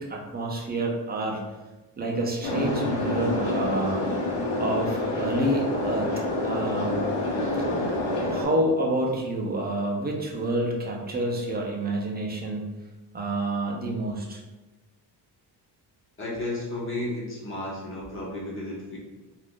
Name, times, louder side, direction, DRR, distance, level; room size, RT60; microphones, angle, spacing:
voice 1, 0.0-1.4 2.0-4.0 4.6-6.1 6.4-7.0 7.6-7.7 8.3-12.7 13.1-14.4, right 1 dB, 25° right, -1 dB, 0.5 m, -28 dB
sound 1, 2.4-8.4, left 2 dB, 80° left, 0.8 m, -27 dB
voice 2, 16.2-19.0, left 1 dB, 30° left, -4 dB, 0.7 m, -33 dB
2.5 x 2.5 x 3.5 m, 1.1 s
cardioid pair, 135°, 42 cm